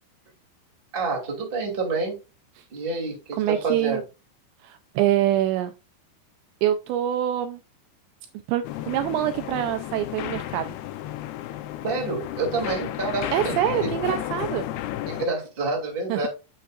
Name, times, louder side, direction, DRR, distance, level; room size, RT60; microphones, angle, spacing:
voice 1, 0.9-2.2 2.7-4.0 11.8-13.6 13.8-13.9 15.1-16.3, right 3 dB, 20° right, 1.8 m, -28 dB
voice 2, 3.3-4.0 4.6-5.7 6.6-7.6 8.5-10.7 13.3-14.7 16.1-16.3, right 12 dB, 85° right, 2.6 m, -25 dB
sound 1, 8.6-15.3, left 13 dB, 85° left, 2.3 m, -32 dB
8.5 x 7.4 x 2.4 m
omnidirectional pair, 5.5 m